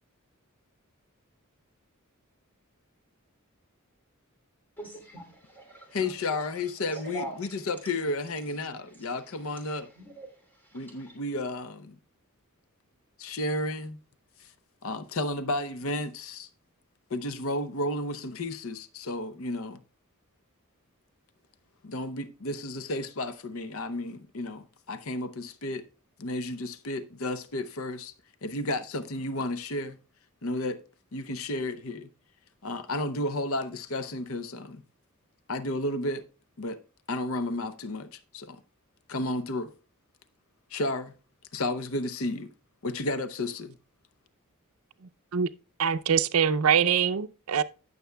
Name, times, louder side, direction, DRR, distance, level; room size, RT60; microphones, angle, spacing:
voice 1, 4.8-7.7 9.0-9.1 9.5-11.2, right 2 dB, 10° left, 2.8 m, -44 dB
voice 2, 5.9-9.9 10.7-12.0 13.2-14.0 14.4-14.5 14.8-16.5 17.1-19.8 21.8-25.9 26.2-28.1 28.4-30.0 30.4-30.8 31.1-32.1 32.6-34.8 35.5-36.2 36.6-36.8 37.1-38.6 39.1-39.7 40.7-41.1 41.5-42.5 42.8-43.8, left 2 dB, 70° left, 0.7 m, -32 dB
voice 3, 45.8-47.6, right 7 dB, 80° right, 0.5 m, -24 dB
16.0 x 6.8 x 2.2 m
head